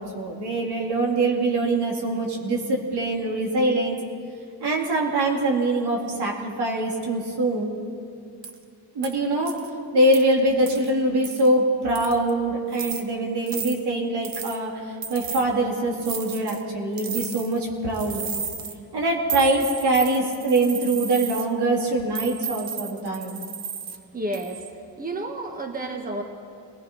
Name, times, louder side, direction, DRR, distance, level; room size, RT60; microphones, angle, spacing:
voice 1, 0.0-4.0 4.6-7.8 8.9-9.5 9.9-18.3 18.9-23.4, right 2 dB, 85° right, -1 dB, 3.7 m, -23 dB
sound 1, 8.4-8.6 9.0-9.1 9.4-9.7 10.1-10.2 10.7-10.9 11.2-11.5 11.9-12.3 12.7-13.0 13.5-13.8 14.2-14.6 15.0-15.4 16.0-16.6 17.0-17.6 17.9-18.7 19.3-21.5 22.1-24.0 24.3-24.7, right 6 dB, 60° right, 1.5 m, -33 dB
voice 2, 24.1-26.2, right 1 dB, 20° right, 3 dB, 1.6 m, -31 dB
26.0 x 19.0 x 5.7 m, 2.3 s
wide cardioid pair, 155°, 39 cm